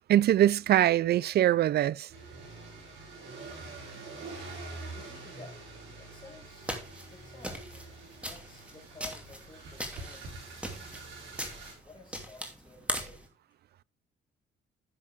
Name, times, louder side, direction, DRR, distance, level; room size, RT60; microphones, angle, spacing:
voice 1, 0.1-2.1, right 12 dB, 55° right, 0.4 m, -23 dB
sound 1, 2.1-11.7, right 3 dB, 70° right, 5.4 m, -45 dB
voice 2, 4.9-5.6 5.9-11.0 11.6-13.3, left 3 dB, 25° left, 5.4 m, -53 dB
sound 2, 6.6-13.3, equal, 5° right, 2.7 m, -40 dB
11.0 x 7.3 x 3.5 m
cardioid pair, 90°, 20 cm